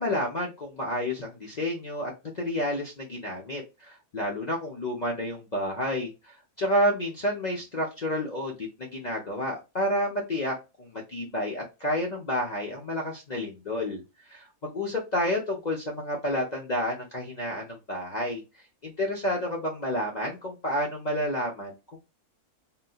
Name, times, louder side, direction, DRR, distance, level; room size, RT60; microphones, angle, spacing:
voice 1, 0.0-14.0 14.3-18.4 18.8-22.0, equal, 40° left, 0.7 m, -30 dB
3.7 x 2.7 x 2.3 m
omnidirectional pair, 1.4 m